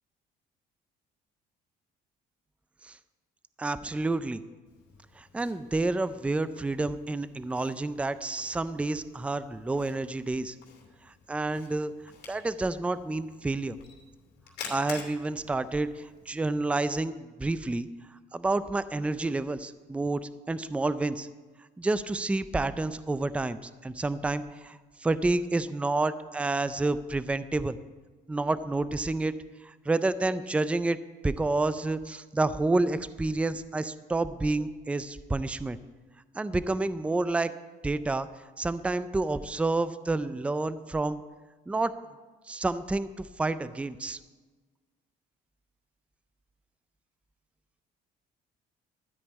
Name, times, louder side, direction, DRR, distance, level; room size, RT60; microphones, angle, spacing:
voice 1, 3.6-4.4 5.2-10.6 11.1-11.9 12.3-13.8 14.7-17.9 18.3-21.3 21.8-27.8 28.3-29.3 29.6-31.0 31.2-35.8 36.3-37.5 37.8-38.3 38.6-41.2 41.7-41.9 42.5-44.2, right 2 dB, 5° right, 14 dB, 0.4 m, -29 dB
Camera, 4.7-16.7, left 6 dB, 80° left, 2.6 m, -50 dB
13.0 x 5.3 x 8.2 m, 1.3 s
cardioid pair, 110°, 17 cm